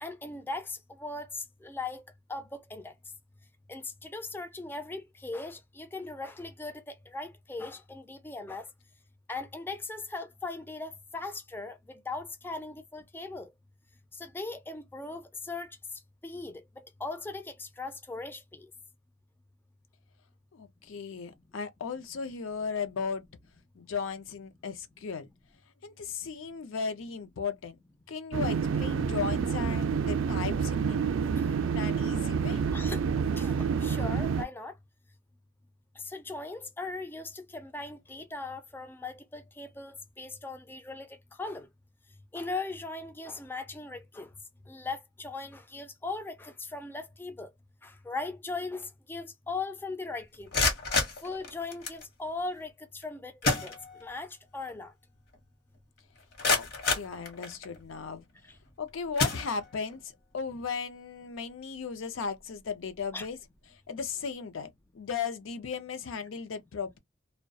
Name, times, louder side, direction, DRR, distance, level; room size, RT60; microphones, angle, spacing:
voice 1, 0.0-2.0 2.3-2.9 3.7-8.7 9.3-13.5 14.1-15.8 16.2-18.7 32.7-33.0 33.4-34.7 36.0-41.7 42.3-44.3 44.7-47.5 47.8-50.6 51.2-54.9 63.1-63.3, left 3 dB, 10° left, 0.3 m, -39 dB
voice 2, 20.5-23.3 23.8-25.3 25.8-27.8 28.1-31.0 31.7-32.6 56.5-58.2 58.8-63.4 63.7-67.0, left 5 dB, 70° left, 0.5 m, -36 dB
sound 1, 28.3-34.4, right 6 dB, 70° right, 0.3 m, -28 dB
sound 2, 50.3-52.1 53.0-53.1 53.4-54.3 54.7-54.8 55.3-55.4 56.0-57.8 58.5-58.7 59.1-60.0, left 3 dB, 50° left, 0.9 m, -30 dB
2.2 x 2.1 x 2.6 m
head